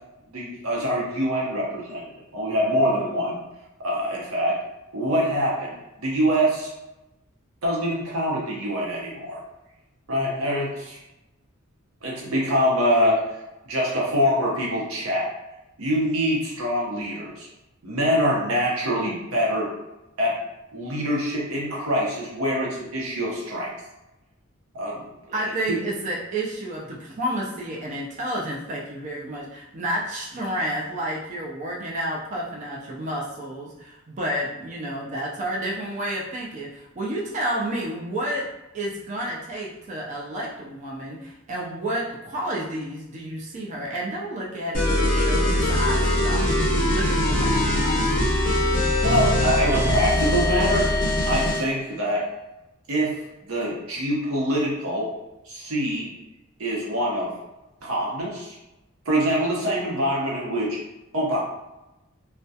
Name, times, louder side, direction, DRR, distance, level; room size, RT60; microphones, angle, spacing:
voice 1, 0.3-2.0 2.3-3.4 3.8-4.6 4.9-6.7 7.6-9.4 10.1-11.0 12.0-13.2 13.7-15.3 15.8-17.5 17.8-19.7 20.2-20.4 20.7-23.7 24.7-25.0 25.4-25.8 49.0-50.9 51.2-52.3 52.9-53.2 53.5-55.1 55.5-56.1 56.6-57.3 57.8-58.6 59.1-60.8 61.1-61.4, equal, 80° right, -4 dB, 0.7 m, -24 dB
voice 2, 25.3-38.5 38.7-47.6, right 1 dB, 35° right, -3 dB, 0.4 m, -30 dB
sound 1, 44.7-51.7, left 1 dB, 40° left, 0.5 m, -22 dB
2.3 x 2.1 x 2.6 m, 0.96 s
head